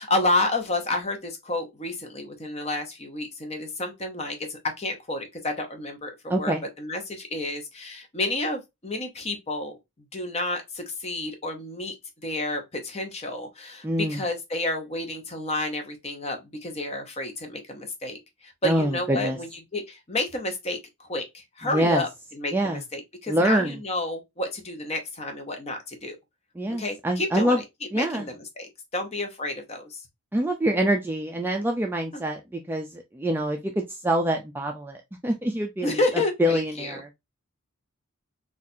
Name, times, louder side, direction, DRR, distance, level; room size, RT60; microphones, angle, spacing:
voice 1, 0.0-9.8 10.1-11.9 12.2-26.2 26.7-27.6 27.9-30.0 32.1-32.2 35.8-37.0, left 2 dB, 30° left, 0.7 m, -30 dB
voice 2, 6.3-6.6 13.8-14.2 18.6-19.4 21.6-22.0 22.5-22.8 23.3-23.8 26.6-27.6 27.9-28.3 30.3-35.0 35.2-37.1, right 1 dB, 10° right, 0.3 m, -25 dB
4.1 x 2.4 x 2.6 m
head